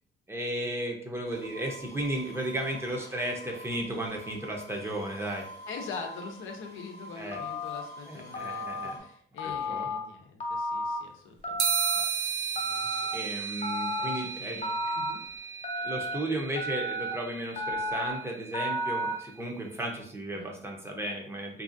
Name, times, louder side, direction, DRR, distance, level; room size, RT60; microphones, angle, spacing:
voice 1, 0.3-5.5 7.2-7.4 8.1-9.0 9.4-9.9 13.0-15.0 15.8-21.6, right 1 dB, 10° right, 0 dB, 0.6 m, -34 dB
sound 1, 1.2-9.0, right 1 dB, 55° left, 0.9 m, -47 dB
voice 2, 5.7-12.0 12.5-13.0 13.8-15.2 20.3-20.5, left 5 dB, 85° left, 3 dB, 0.5 m, -44 dB
Telephone, 7.3-7.8 8.3-8.9 9.4-10.0 10.4-11.0 11.4-12.0 12.6-13.1 13.6-14.2 14.6-15.1 15.6-16.2 16.6-17.1 17.6-18.1 18.5-19.1, left 1 dB, 35° left, 0.5 m, -32 dB
sound 2, 11.6-19.3, right 7 dB, 75° right, 0.5 m, -35 dB
2.7 x 2.4 x 2.5 m, 0.62 s
cardioid pair, 90°, 20 cm